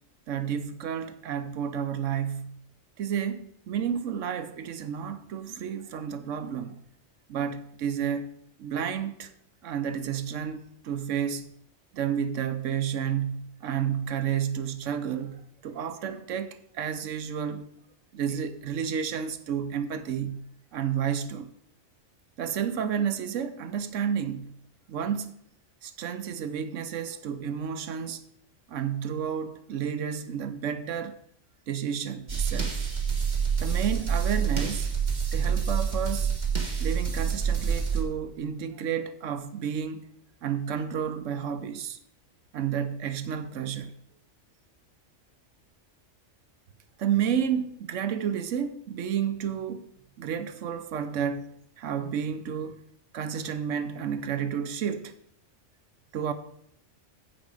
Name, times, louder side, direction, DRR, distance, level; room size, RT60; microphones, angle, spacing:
voice 1, 0.3-2.6 3.0-6.8 7.3-8.3 8.6-9.3 9.6-11.5 11.9-17.7 18.1-21.5 22.4-24.6 24.9-25.3 25.8-28.2 28.7-31.2 31.7-32.8 33.6-34.9 35.3-36.3 36.8-40.1 40.4-42.0 42.5-44.0 47.0-49.8 50.2-51.5 51.8-52.8 53.1-55.1 56.1-56.3, right 8 dB, 90° right, 1.1 m, -31 dB
sound 1, 32.3-38.0, right 6 dB, 35° right, 1.7 m, -27 dB
15.0 x 5.1 x 4.9 m
omnidirectional pair, 1.2 m